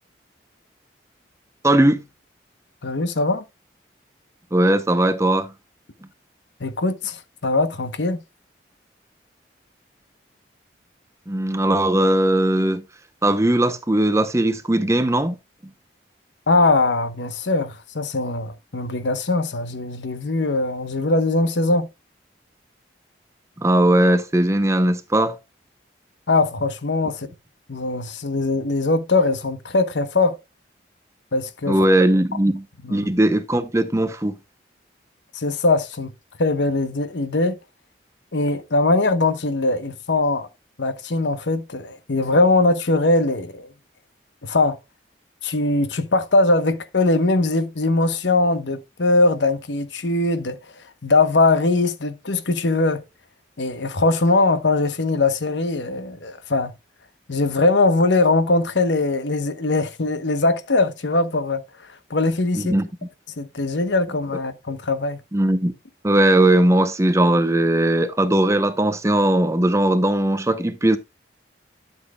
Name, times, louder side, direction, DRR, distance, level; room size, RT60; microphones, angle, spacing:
voice 1, 1.6-2.0 4.5-5.5 11.3-12.8 13.2-15.4 23.6-25.4 31.7-32.6 32.9-34.3 62.6-62.9 65.3-65.7 66.0-71.0, right 1 dB, 15° right, 0.7 m, -19 dB
voice 2, 2.8-3.4 6.6-8.2 16.5-21.9 26.3-27.3 27.7-30.4 31.3-31.9 32.8-33.1 35.3-36.1 36.4-37.6 38.3-40.5 40.8-43.7 44.4-44.8 45.4-50.6 51.0-53.0 53.6-56.7 57.3-61.6 62.1-62.7 63.4-65.2, left 2 dB, 75° left, 1.0 m, -21 dB
12.0 x 7.3 x 2.2 m
head